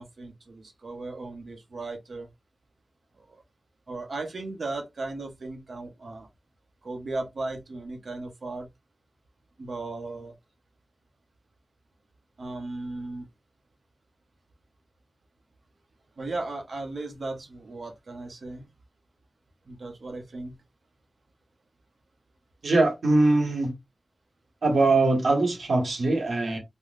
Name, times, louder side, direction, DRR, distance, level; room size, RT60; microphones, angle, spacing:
voice 1, 0.0-2.3 3.2-3.4 3.9-6.3 6.8-8.7 9.6-10.3 12.4-13.3 16.2-18.7 19.7-20.6, right 2 dB, 70° right, 0.9 m, -36 dB
voice 2, 22.6-23.7 24.6-26.6, right 2 dB, 85° right, 1.2 m, -22 dB
3.6 x 2.2 x 2.4 m
wide cardioid pair, 100°, 0 cm